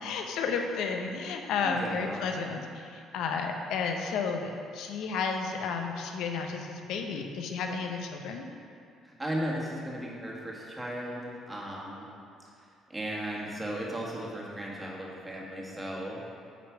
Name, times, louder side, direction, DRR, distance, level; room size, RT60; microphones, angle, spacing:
voice 1, 0.0-8.5, left 5 dB, 75° left, 4 dB, 0.6 m, -32 dB
voice 2, 1.6-2.2 9.0-12.1 12.9-16.2, right 1 dB, 15° right, -4 dB, 1.4 m, -36 dB
9.1 x 3.2 x 4.6 m, 2.4 s
cardioid pair, 90°, 0 cm